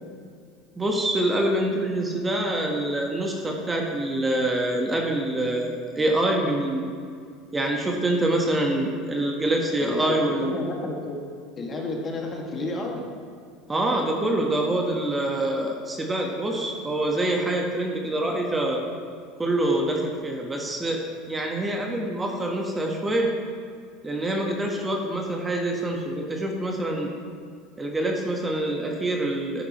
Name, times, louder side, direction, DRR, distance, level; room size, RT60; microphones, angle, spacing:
voice 1, 0.8-6.8 7.5-10.5 13.7-18.8 19.4-21.0 21.3-23.3 24.0-27.1 27.8-29.6, right 1 dB, 20° right, 1 dB, 1.3 m, -25 dB
voice 2, 9.8-11.2 11.6-13.0, left 2 dB, 35° left, -1 dB, 2.0 m, -31 dB
10.5 x 9.2 x 3.1 m, 2.2 s
hypercardioid pair, 85°, 0 cm